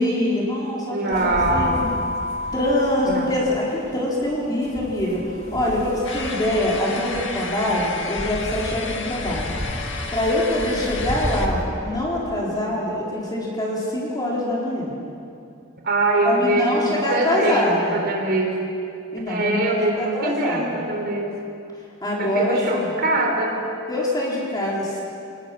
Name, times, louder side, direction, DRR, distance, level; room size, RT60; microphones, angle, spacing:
voice 1, 0.0-1.9 2.5-5.2 5.5-9.5 10.1-14.9 16.2-18.0 19.1-19.6 20.0-20.8 22.0-22.9 23.9-25.0, left 1 dB, 20° left, -5 dB, 4.2 m, -24 dB
voice 2, 0.9-1.9 3.0-3.4 10.6-11.1 15.8-18.5 19.3-21.3 22.2-23.6, right 2 dB, 50° right, 1 dB, 3.8 m, -23 dB
sound 1, 1.1-11.6, left 1 dB, 35° left, 2.8 m, -31 dB
sound 2, 6.0-11.5, left 4 dB, 65° left, 1.7 m, -32 dB
27.0 x 19.5 x 6.0 m, 2.6 s
head